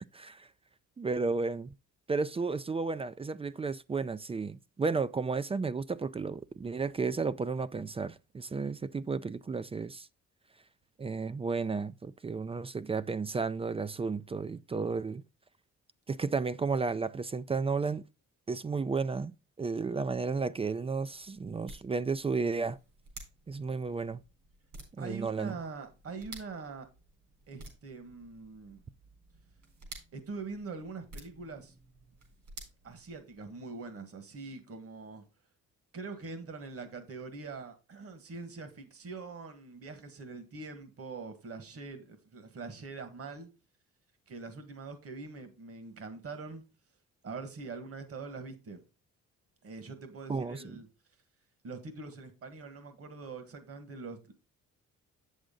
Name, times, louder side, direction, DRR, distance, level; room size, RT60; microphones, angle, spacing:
voice 1, 0.1-0.5 1.0-1.7 2.1-10.1 11.0-15.2 16.1-18.0 18.5-22.8 23.5-24.2 25.0-25.5 50.3-50.6, right 4 dB, 20° right, 0.3 m, -33 dB
sound 1, 20.8-33.6, right 2 dB, 70° right, 4.1 m, -53 dB
voice 2, 25.0-26.9 27.5-28.8 30.1-31.7 32.8-35.2 35.9-43.5 44.3-46.6 47.2-48.8 49.6-50.9 51.6-54.3, right 4 dB, 50° right, 1.7 m, -43 dB
8.0 x 6.4 x 3.8 m
cardioid pair, 90°, 30 cm